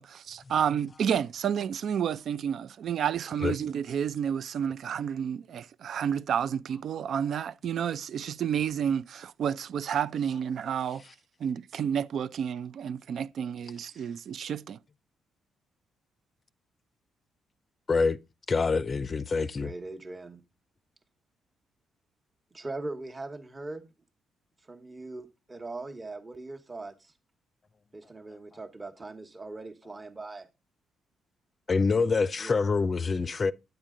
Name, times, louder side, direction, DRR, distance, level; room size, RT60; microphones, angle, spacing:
voice 1, 0.0-11.0 11.4-14.8, right 8 dB, 60° right, 0.5 m, -30 dB
voice 2, 17.9-18.2 18.5-19.7 31.7-33.5, left 4 dB, 35° left, 0.5 m, -26 dB
voice 3, 19.3-20.4 22.5-23.9 24.7-27.1 27.9-30.5 32.4-32.5, right 2 dB, 25° right, 1.2 m, -40 dB
9.1 x 8.9 x 3.7 m
cardioid pair, 90°, 0 cm